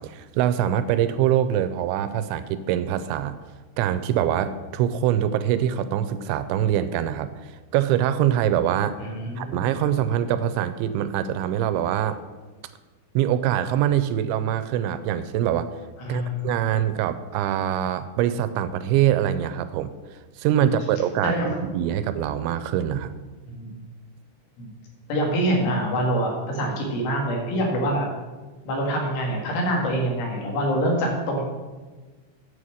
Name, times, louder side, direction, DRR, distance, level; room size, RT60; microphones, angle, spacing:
voice 1, 0.0-3.4 3.8-9.0 9.4-12.2 13.2-15.7 16.1-19.9 20.4-21.4 21.6-23.2, right 10 dB, 85° right, 12 dB, 2.7 m, -24 dB
voice 2, 9.0-9.6 16.0-16.4 21.2-21.6 23.5-23.8 24.6-24.7 25.1-28.1 28.6-31.4, right 1 dB, 80° left, -1 dB, 4.7 m, -25 dB
9.9 x 7.3 x 6.3 m, 1.3 s
omnidirectional pair, 5.5 m